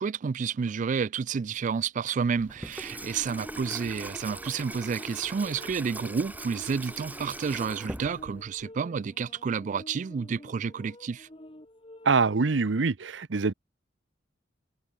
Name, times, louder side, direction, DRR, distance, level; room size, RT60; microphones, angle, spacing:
voice 1, 0.0-11.3, right 6 dB, 45° right, 0.3 m, -30 dB
Water tap faucet / Sink (filling or washing), 2.4-8.6, right 1 dB, 10° right, 4.3 m, -41 dB
sound 1, 3.0-12.9, left 1 dB, 30° left, 4.4 m, -50 dB
voice 2, 12.0-13.5, right 4 dB, 75° right, 0.7 m, -24 dB
head